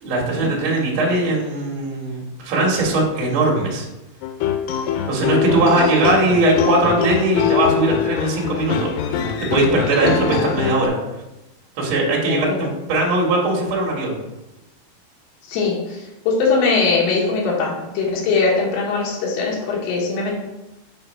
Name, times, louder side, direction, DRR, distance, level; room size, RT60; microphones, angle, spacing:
voice 1, 0.0-3.9 5.1-11.0 11.8-14.2, right 2 dB, 50° right, -3 dB, 1.6 m, -20 dB
sound 1, 4.2-10.9, left 8 dB, 90° left, 2.6 m, -23 dB
voice 2, 12.3-12.6 15.5-16.0 16.3-20.3, left 4 dB, 55° left, -4 dB, 2.0 m, -21 dB
5.7 x 3.9 x 5.3 m, 0.98 s
omnidirectional pair, 4.6 m